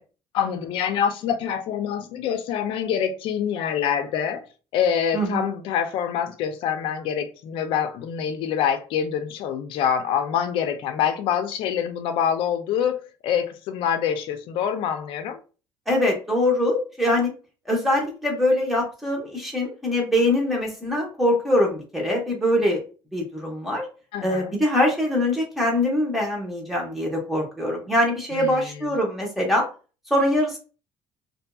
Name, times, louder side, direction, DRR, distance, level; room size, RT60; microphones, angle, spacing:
voice 1, 0.3-4.5 4.7-15.4 24.1-24.5 28.3-28.5, left 8 dB, 75° left, 0.4 m, -25 dB
voice 2, 5.1-5.5 15.9-17.3 17.7-22.8 23.1-23.9 24.2-29.7 30.1-30.6, left 1 dB, ahead, 1.0 m, -23 dB
2.7 x 2.6 x 2.2 m
cardioid pair, 140°, 9 cm